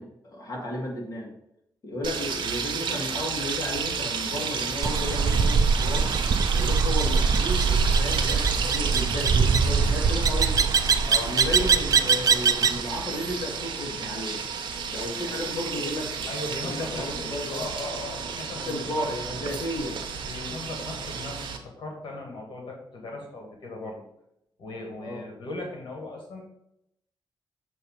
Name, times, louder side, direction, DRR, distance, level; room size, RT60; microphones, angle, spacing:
voice 1, 0.0-1.3 1.8-6.2 6.5-10.6 11.2-14.4 14.9-16.3 16.6-17.6 18.6-20.0 25.0-25.3, left 1 dB, 45° left, -2 dB, 1.7 m, -33 dB
sound 1, 2.0-21.6, right 6 dB, 80° right, 0.9 m, -32 dB
sound 2, 4.8-12.8, right 5 dB, 45° right, 0.4 m, -22 dB
voice 2, 11.1-11.4 16.3-19.0 20.2-24.0 24.6-26.4, left 2 dB, 80° left, 0 dB, 1.5 m, -38 dB
6.5 x 2.8 x 5.4 m, 0.80 s
cardioid pair, 95°, 8 cm